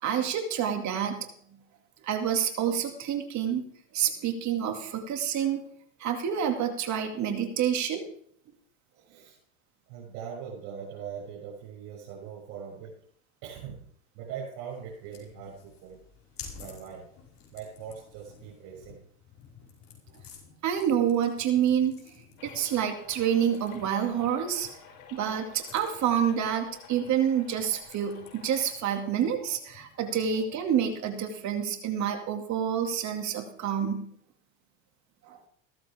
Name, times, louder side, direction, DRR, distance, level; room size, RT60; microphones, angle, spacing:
voice 1, 0.0-1.3 2.0-3.6 3.9-5.6 6.0-8.1 20.6-22.2 22.4-24.7 25.1-34.1 35.3-35.4, right 9 dB, 45° right, 4 dB, 2.4 m, -28 dB
voice 2, 9.0-9.4 9.9-13.0 13.4-13.9 14.1-16.0 16.6-17.1 17.5-19.0, right 7 dB, 65° right, -4 dB, 7.2 m, -41 dB
sound 1, 14.7-31.3, left 6 dB, 45° left, 5.3 m, -53 dB
sound 2, 22.4-28.7, left 7 dB, 75° left, 5.7 m, -51 dB
16.0 x 14.0 x 3.7 m, 0.64 s
hypercardioid pair, 100°, 39 cm